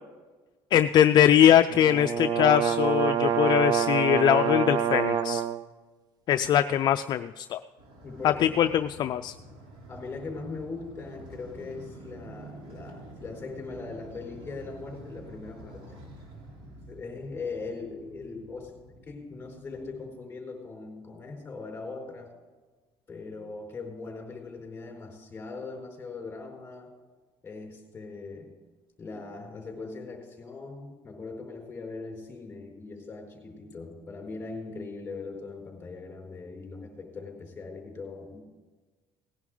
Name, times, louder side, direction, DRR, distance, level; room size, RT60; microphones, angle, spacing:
voice 1, 0.7-5.4 6.3-7.6 8.2-9.3, left 10 dB, 50° left, 9 dB, 0.4 m, -22 dB
sound 1, 1.7-5.6, right 8 dB, 40° right, 0.6 m, -26 dB
Motorcycle, 7.8-20.0, right 1 dB, 65° right, 3.5 m, -48 dB
voice 2, 8.0-8.5 9.9-16.0 16.6-22.3 23.1-26.9 27.4-28.5 29.0-38.4, left 4 dB, 20° left, 0 dB, 4.5 m, -40 dB
18.5 x 10.5 x 3.9 m, 1.3 s
cardioid pair, 140°, 10 cm